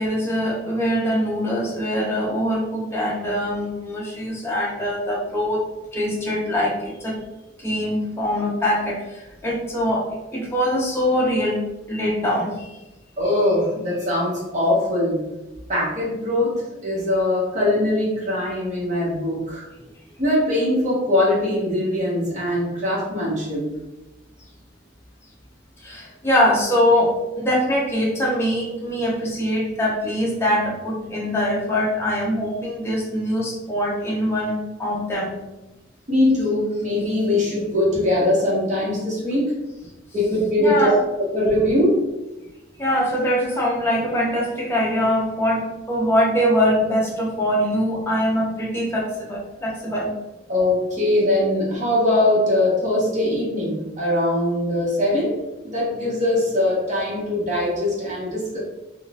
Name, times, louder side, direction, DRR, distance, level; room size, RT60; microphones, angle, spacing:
voice 1, 0.0-5.6 5.9-7.1 7.6-10.0 10.3-11.6 11.9-12.8 25.8-35.4 40.6-41.0 42.8-50.1, equal, 15° left, -5 dB, 0.7 m, -23 dB
voice 2, 13.2-15.2 15.7-19.7 20.2-23.7 36.1-39.5 40.1-40.9 41.2-42.0 50.5-55.3 55.6-58.6, left 1 dB, 40° right, -6 dB, 1.1 m, -21 dB
3.7 x 2.4 x 2.4 m, 1.0 s
head